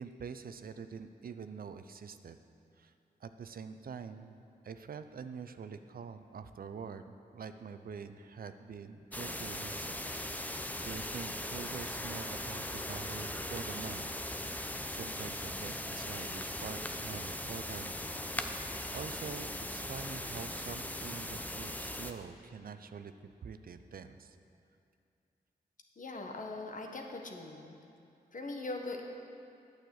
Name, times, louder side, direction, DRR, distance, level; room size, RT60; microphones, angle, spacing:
voice 1, 0.0-2.4 2.8-2.9 3.2-4.4 4.6-10.0 10.3-14.1 14.5-17.9 18.9-23.1 23.4-24.4, right 6 dB, 60° right, 9 dB, 0.6 m, -45 dB
sound 1, 9.1-22.1, left 1 dB, 10° left, 0.7 m, -39 dB
voice 2, 26.0-27.8 28.3-29.0, left 2 dB, 50° left, 2 dB, 1.4 m, -41 dB
9.1 x 6.6 x 7.9 m, 2.5 s
cardioid pair, 55°, 17 cm